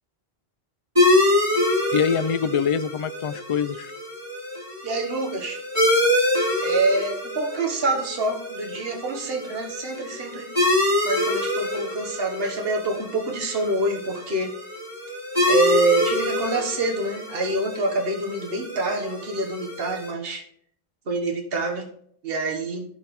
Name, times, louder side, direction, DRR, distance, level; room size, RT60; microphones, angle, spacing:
sound 1, 1.0-20.1, left 1 dB, 30° right, 3.3 m, -26 dB
voice 1, 1.9-3.9, left 7 dB, 55° left, 14 dB, 0.3 m, -24 dB
voice 2, 4.8-5.6 6.6-10.5 11.0-14.5 15.5-20.4 21.1-21.9 22.2-22.9, right 2 dB, 70° right, 2 dB, 1.4 m, -26 dB
15.0 x 5.1 x 3.1 m, 0.64 s
omnidirectional pair, 1.0 m